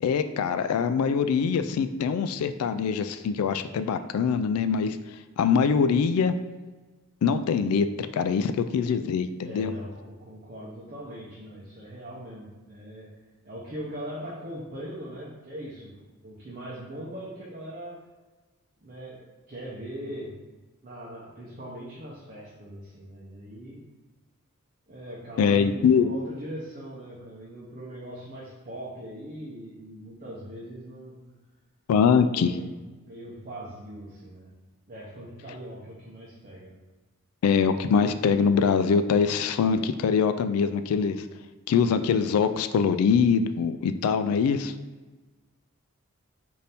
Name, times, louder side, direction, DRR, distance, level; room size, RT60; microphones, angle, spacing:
voice 1, 0.0-5.0 5.4-6.3 7.2-7.9 8.1-9.7 25.4-26.1 31.9-32.6 37.4-41.2 41.7-44.7, left 6 dB, 90° left, 12 dB, 0.3 m, -23 dB
voice 2, 9.4-13.1 13.4-18.0 18.8-20.4 20.8-23.9 24.9-31.2 32.0-32.7 33.0-34.5 34.9-36.7, equal, 40° right, -7 dB, 0.6 m, -40 dB
4.1 x 2.7 x 3.4 m, 1.2 s
head